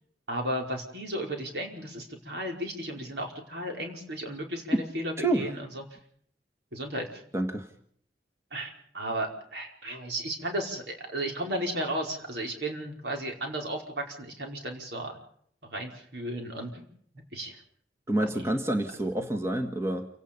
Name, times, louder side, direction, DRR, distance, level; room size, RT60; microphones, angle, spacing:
voice 1, 0.3-5.8 6.7-7.2 8.5-15.2 15.6-16.9 17.3-17.6 18.3-18.4, right 1 dB, 70° right, 2 dB, 5.1 m, -34 dB
voice 2, 5.2-5.5 7.3-7.7 18.1-20.1, right 1 dB, 15° right, 4 dB, 1.6 m, -28 dB
29.0 x 18.0 x 5.4 m, 0.64 s
head